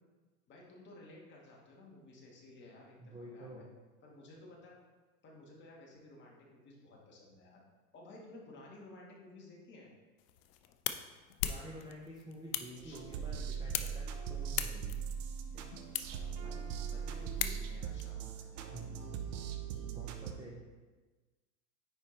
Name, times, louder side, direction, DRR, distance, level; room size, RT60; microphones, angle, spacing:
voice 1, 0.5-3.6 4.0-4.8 5.2-7.6 7.9-9.9 12.8-13.0 13.6-13.7 16.4-18.7 19.9-20.0, left 2 dB, 25° left, -2 dB, 1.6 m, -55 dB
voice 2, 3.0-3.7 11.4-15.0 18.2-18.3 18.7-19.1 19.7-20.6, right 1 dB, 10° right, -4 dB, 0.6 m, -49 dB
sound 1, 10.2-18.0, left 11 dB, 45° left, 0.5 m, -42 dB
sound 2, 12.8-20.3, right 7 dB, 60° right, 0.8 m, -40 dB
9.7 x 4.3 x 3.3 m, 1.3 s
supercardioid pair, 140°, 43 cm